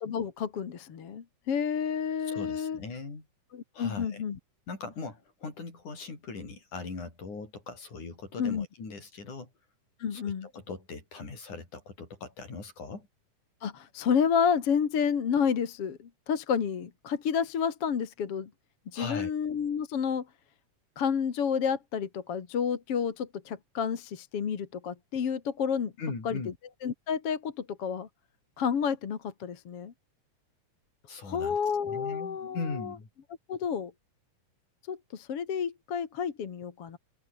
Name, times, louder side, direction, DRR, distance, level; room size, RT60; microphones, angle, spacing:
voice 1, 0.0-2.8 3.5-4.4 8.4-8.7 10.0-10.5 13.6-18.5 18.9-20.3 21.0-25.9 26.2-26.4 26.8-28.1 28.6-29.9 31.2-32.9 33.5-33.9 34.9-37.0, left 7 dB, 50° left, 2.8 m, -30 dB
voice 2, 2.2-3.3 3.7-4.2 4.7-9.5 10.1-13.1 18.9-19.3 26.0-26.5 31.1-31.6 31.9-33.1, left 4 dB, 65° left, 7.8 m, -40 dB
open air
omnidirectional pair, 3.7 m